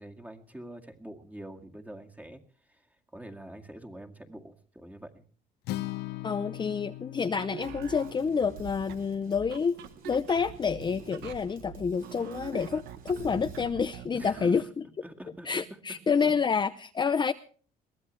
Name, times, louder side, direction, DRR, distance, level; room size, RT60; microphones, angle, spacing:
voice 1, 0.0-2.4 3.1-5.2 14.1-14.6 15.0-16.3, right 1 dB, 10° right, 4 dB, 2.1 m, -45 dB
Acoustic guitar, 5.7-9.9, left 16 dB, 80° left, 0.9 m, -40 dB
voice 2, 6.2-9.8 10.0-14.6 15.4-17.3, left 6 dB, 25° left, 10 dB, 0.7 m, -28 dB
sound 1, 7.3-14.6, right 10 dB, 80° right, 1.4 m, -44 dB
Drum kit, 7.6-13.6, right 4 dB, 60° right, 7.6 m, -50 dB
22.0 x 16.0 x 3.3 m, 0.42 s
cardioid pair, 110°, 17 cm